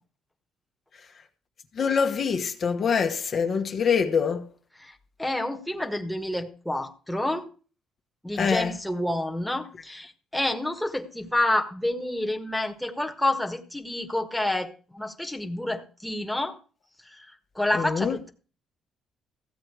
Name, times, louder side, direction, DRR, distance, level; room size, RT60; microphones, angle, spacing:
voice 1, 1.8-4.4 8.4-8.7 17.8-18.1, left 6 dB, 50° left, 1.3 m, -24 dB
voice 2, 4.8-7.5 8.2-16.6 17.0-18.3, left 1 dB, 5° left, 1.5 m, -29 dB
15.0 x 7.8 x 4.8 m
cardioid pair, 90°, 0 cm